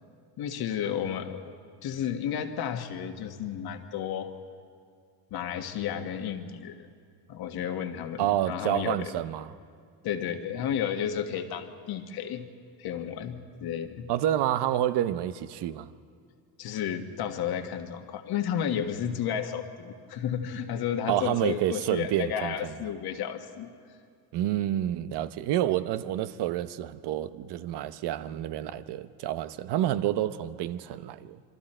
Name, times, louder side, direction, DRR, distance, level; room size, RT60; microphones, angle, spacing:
voice 1, 0.4-4.3 5.3-6.9 7.3-9.1 10.0-12.5 12.8-14.1 16.6-23.7, left 9 dB, 60° left, 1.6 m, -32 dB
voice 2, 8.2-9.5 14.1-15.9 21.1-22.7 24.3-31.5, right 12 dB, 65° right, 0.9 m, -29 dB
27.0 x 24.0 x 4.4 m
cardioid pair, 125°, 43 cm